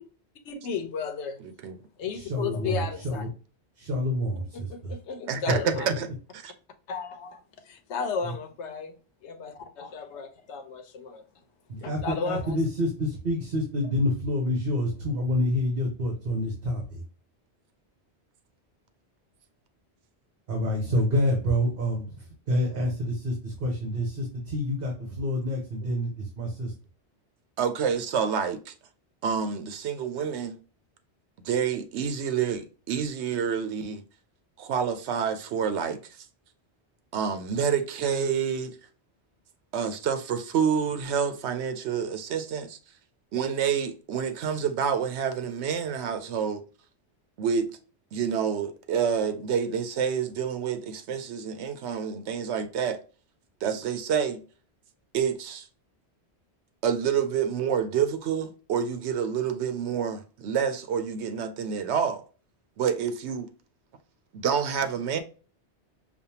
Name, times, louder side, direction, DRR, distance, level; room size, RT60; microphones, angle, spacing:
voice 1, 0.4-1.4 2.0-3.2 4.5-5.9 6.9-7.3 7.7-8.9 9.2-9.5 9.8-11.2 12.0-12.6, left 5 dB, 90° left, 1.0 m, -33 dB
voice 2, 1.4-1.8 5.3-6.1 6.4-6.5 27.6-28.7 29.2-30.6 31.4-34.0 34.6-36.2 37.1-38.8 39.7-42.8 43.3-46.6 47.4-47.7 48.1-53.0 53.6-54.4 55.1-55.7 56.8-62.2 62.8-63.5 64.3-65.2, right 7 dB, 85° right, 0.9 m, -28 dB
voice 3, 2.1-3.3 3.8-4.9 5.5-5.7 8.2-8.3 11.7-17.0 20.5-26.7, left 1 dB, 60° right, 1.2 m, -28 dB
5.2 x 2.4 x 2.7 m
omnidirectional pair, 1.1 m